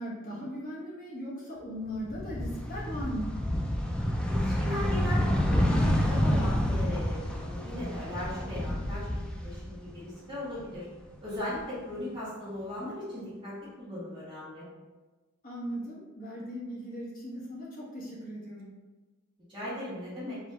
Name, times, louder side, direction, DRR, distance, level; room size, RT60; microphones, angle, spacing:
voice 1, 0.0-3.4 15.4-18.7, equal, 40° left, -6 dB, 1.3 m, -38 dB
sound 1, 1.9-10.1 10.4-11.6, equal, 5° left, 0.3 m, -29 dB
voice 2, 4.3-10.9 11.2-14.7 19.5-20.4, left 1 dB, 20° right, -12 dB, 1.2 m, -38 dB
4.9 x 2.6 x 3.2 m, 1.2 s
head